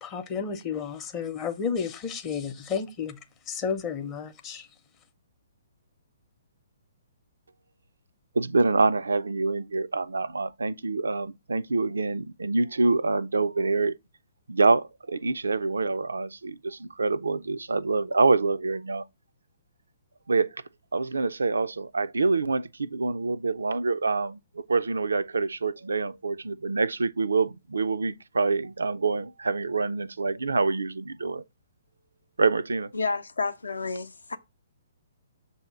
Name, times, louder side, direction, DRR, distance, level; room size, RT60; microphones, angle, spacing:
voice 1, 0.0-3.2 3.5-4.7, left 6 dB, 25° left, 0.7 m, -32 dB
voice 2, 8.3-13.9 14.5-19.0 20.3-20.6 20.9-31.4 32.4-32.9, right 3 dB, 70° right, 0.3 m, -26 dB
voice 3, 32.9-34.4, left 4 dB, 75° left, 0.7 m, -30 dB
6.8 x 2.7 x 5.6 m
figure-of-eight pair, 125°, 0 cm